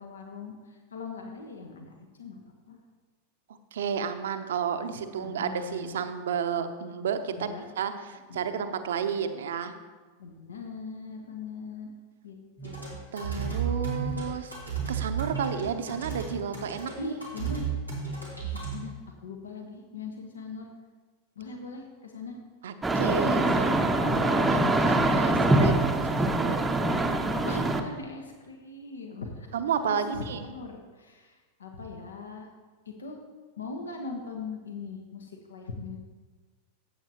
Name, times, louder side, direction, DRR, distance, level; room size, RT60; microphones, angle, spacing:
voice 1, 0.0-1.9 2.2-2.4 2.7-2.8 5.2-6.0 7.4-7.6 8.3-8.6 10.2-11.9 12.2-13.0 17.0-17.7 18.4-20.7 21.4-22.4 27.4-29.5 29.9-32.5 32.9-33.2 33.6-36.0, left 4 dB, 70° left, 3 dB, 1.1 m, -40 dB
voice 2, 3.7-9.7 13.1-14.5 14.9-17.1 22.6-24.6 24.9-26.6 29.5-30.5, right 7 dB, 60° right, 9 dB, 0.7 m, -32 dB
sound 1, 12.6-18.7, right 6 dB, 85° left, 2.5 m, -33 dB
sound 2, 22.8-27.8, right 2 dB, 10° right, 0.7 m, -24 dB
14.5 x 8.0 x 2.9 m, 1.4 s
figure-of-eight pair, 90°, 0 cm